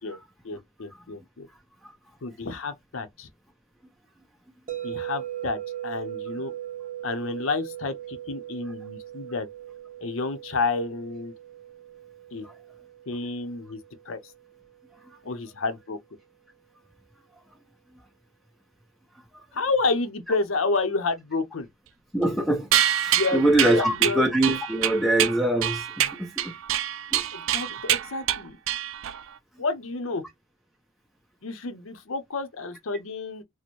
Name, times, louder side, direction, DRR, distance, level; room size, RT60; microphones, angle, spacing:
voice 1, 0.4-1.5 2.2-3.3 4.8-6.5 7.0-9.5 10.0-11.3 12.3-12.5 13.1-13.8 14.1-14.2 15.2-16.0 19.5-21.7 23.1-23.4 23.7-24.2 27.3-28.6 29.6-30.2 31.4-33.4, left 3 dB, 80° left, 0.7 m, -30 dB
sound 1, 4.7-14.8, right 12 dB, 40° right, 0.8 m, -39 dB
voice 2, 22.1-22.7 23.0-26.5 27.1-27.2, right 1 dB, ahead, 0.8 m, -23 dB
sound 2, 22.7-29.3, right 11 dB, 75° right, 0.4 m, -26 dB
4.2 x 2.1 x 3.0 m
head